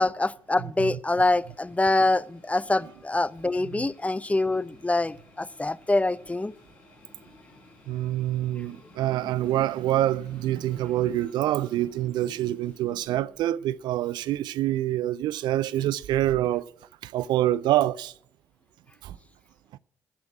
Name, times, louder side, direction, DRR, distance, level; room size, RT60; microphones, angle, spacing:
voice 1, 0.0-6.5, left 2 dB, 15° left, 0.5 m, -25 dB
voice 2, 0.6-1.0 3.7-3.9 7.9-16.7 17.0-18.1 19.0-19.2, right 13 dB, 70° right, 0.4 m, -26 dB
sound 1, 1.0-13.4, left 2 dB, 70° left, 5.4 m, -55 dB
15.5 x 5.2 x 8.8 m
hypercardioid pair, 40°, 8 cm